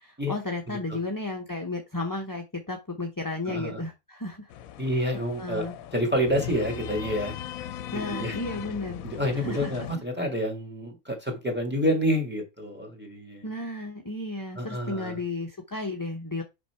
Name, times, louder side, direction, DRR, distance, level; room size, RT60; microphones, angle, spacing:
voice 1, 0.0-4.5 5.4-5.7 7.9-9.1 9.3-9.7 13.4-16.4, left 2 dB, 20° left, 2 dB, 0.6 m, -33 dB
voice 2, 3.5-3.8 4.8-5.6 5.9-7.3 7.9-8.4 9.0-13.5 14.5-15.2, equal, 5° right, 3 dB, 2.0 m, -28 dB
sound 1, 4.5-10.0, left 10 dB, 75° left, 1.0 m, -38 dB
5.9 x 5.3 x 4.5 m, 0.25 s
omnidirectional pair, 1.5 m